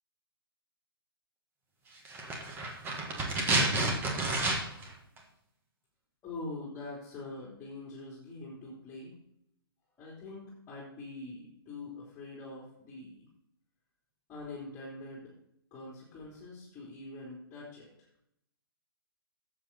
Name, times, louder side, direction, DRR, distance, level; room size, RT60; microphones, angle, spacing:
sound 1, 2.1-4.9 5.2-5.3, right 2 dB, 15° right, 1.7 m, -30 dB
voice 1, 6.2-9.1 10.0-13.2 14.3-15.3 15.7-17.9, left 2 dB, 20° left, -5 dB, 3.3 m, -44 dB
11.5 x 7.5 x 4.2 m, 0.74 s
hypercardioid pair, 140°, 13 cm